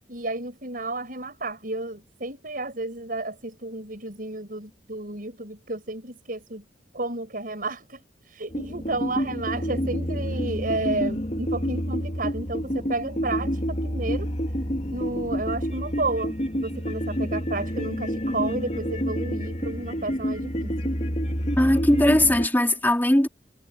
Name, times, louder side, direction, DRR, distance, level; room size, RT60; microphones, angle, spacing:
voice 1, 0.1-6.6 6.9-8.0 8.3-14.3 14.9-20.7, right 2 dB, 50° right, 7.2 m, -32 dB
sound 1, 8.5-22.5, equal, 40° left, 3.0 m, -28 dB
voice 2, 21.6-23.3, left 1 dB, 10° left, 2.7 m, -19 dB
head